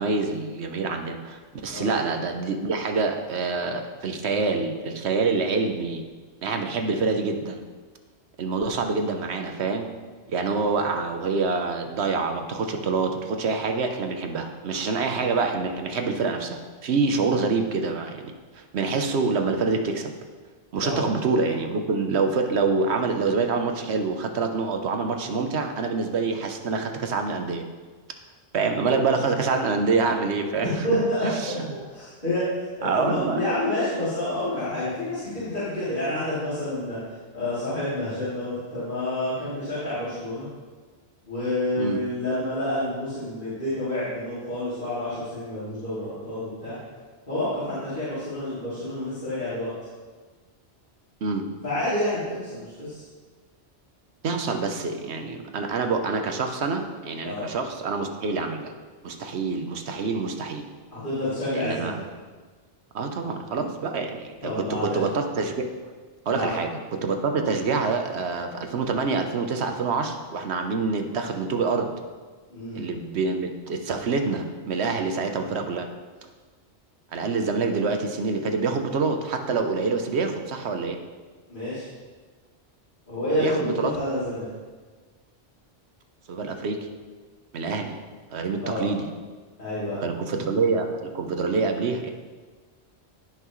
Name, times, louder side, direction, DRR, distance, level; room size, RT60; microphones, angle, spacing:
voice 1, 0.0-6.0 6.4-7.6 8.4-9.9 10.3-20.1 20.7-27.6 28.5-30.8 31.2-31.6 32.8-33.4 41.8-42.0 51.2-51.5 54.2-58.7 59.0-60.7 61.5-62.0 62.9-65.7 66.3-71.9 72.7-75.9 77.1-81.0 83.4-83.9 86.3-86.9 87.5-88.0 88.3-89.1 90.0-92.1, right 4 dB, 75° right, 5 dB, 1.1 m, -26 dB
voice 2, 30.6-31.6 31.9-32.5 32.8-37.0 37.3-40.5 41.3-46.7 47.3-49.7 51.6-53.0 57.2-57.5 60.9-62.0 64.4-65.1 66.3-66.5 72.5-72.8 81.5-81.9 83.1-84.5 88.6-88.9 89.6-90.1, left 1 dB, 50° left, -13 dB, 3.4 m, -28 dB
16.0 x 6.0 x 3.1 m, 1.4 s
omnidirectional pair, 1.1 m